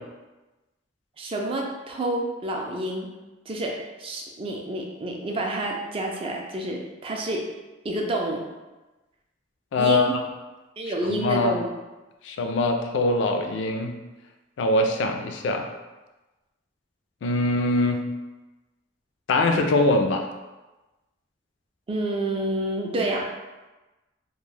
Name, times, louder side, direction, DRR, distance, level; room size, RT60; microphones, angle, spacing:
voice 1, 1.2-3.1 3.5-3.7 4.0-7.5 7.8-8.5 9.8-10.2 10.8-11.7 21.9-23.3, right 1 dB, 30° right, 0 dB, 0.3 m, -28 dB
voice 2, 9.7-10.2 11.0-11.5 12.2-14.0 14.6-15.7 17.2-18.1 19.3-20.3, left 2 dB, 70° left, 5 dB, 0.3 m, -23 dB
2.3 x 2.2 x 3.2 m, 1.1 s
head